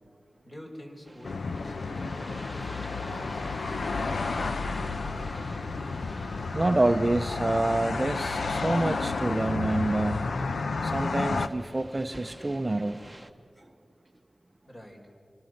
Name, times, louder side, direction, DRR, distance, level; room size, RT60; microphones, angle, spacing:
voice 1, 0.4-4.1 14.7-15.0, equal, 30° left, 1 dB, 5.0 m, -47 dB
sound 1, 1.1-13.3, right 1 dB, 5° right, 1.3 m, -48 dB
sound 2, 1.2-11.5, left 4 dB, 85° left, 0.8 m, -31 dB
voice 2, 6.5-10.3 10.8-13.0, right 2 dB, 25° right, 8 dB, 0.7 m, -27 dB
26.0 x 25.5 x 6.6 m, 2.3 s
wide cardioid pair, 80°, 0 cm